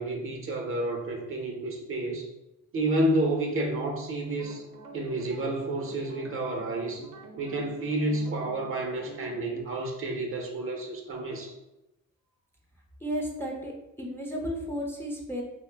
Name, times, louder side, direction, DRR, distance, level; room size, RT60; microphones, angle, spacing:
voice 1, 0.0-2.3 2.7-4.6 4.9-7.0 7.4-11.5, right 1 dB, 45° right, 1 dB, 0.6 m, -30 dB
sound 1, 4.2-9.4, right 2 dB, 85° right, 0.5 m, -47 dB
voice 2, 13.0-15.4, equal, 10° left, -2 dB, 0.5 m, -33 dB
2.9 x 2.0 x 3.2 m, 0.94 s
cardioid pair, 90°, 30 cm